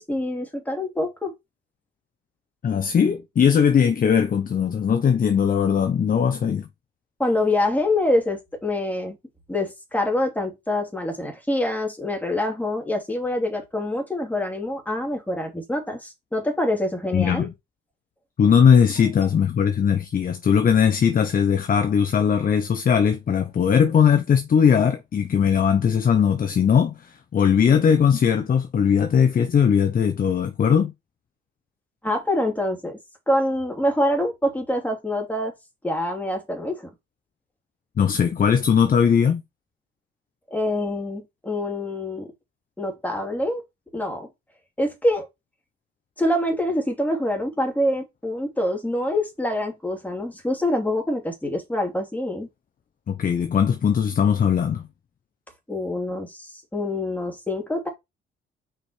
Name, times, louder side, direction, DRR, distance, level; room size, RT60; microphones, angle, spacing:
voice 1, 0.0-1.3 7.2-9.2 9.5-17.5 32.0-33.0 33.3-35.5 35.8-36.9 40.5-42.3 42.8-43.6 43.9-44.3 44.8-45.3 46.2-52.5 55.7-57.9, left 1 dB, 10° left, 2.8 m, -25 dB
voice 2, 2.6-6.7 17.1-17.5 18.4-30.9 38.0-39.4 53.1-54.8, left 7 dB, 45° left, 0.9 m, -19 dB
5.1 x 5.1 x 4.5 m
cardioid pair, 90°, 20 cm